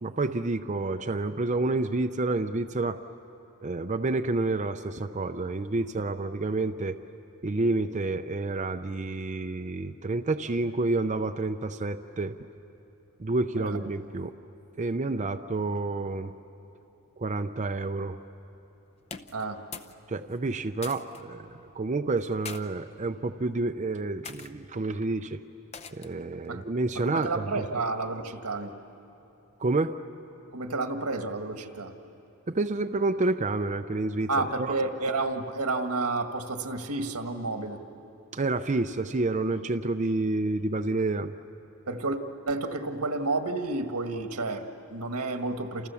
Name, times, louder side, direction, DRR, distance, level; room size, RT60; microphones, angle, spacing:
voice 1, 0.0-3.0 3.6-7.0 7.4-12.4 13.2-14.3 14.8-16.3 17.2-18.2 20.1-25.4 25.9-27.7 29.6-30.0 32.5-34.3 34.6-34.7 38.3-41.3, right 2 dB, 30° right, 6 dB, 0.5 m, -29 dB
voice 2, 13.6-14.3 15.2-15.3 19.3-19.6 26.5-26.6 26.9-28.7 30.5-31.9 34.3-37.8 41.9-42.2 42.5-45.9, right 3 dB, 90° right, 6 dB, 1.7 m, -31 dB
sound 1, 19.0-20.0 20.3-21.2 22.1-22.6 23.4-23.7 24.2-24.5 25.7-26.2, left 5 dB, 30° left, 0.8 m, -43 dB
29.0 x 28.5 x 7.1 m, 3.0 s
head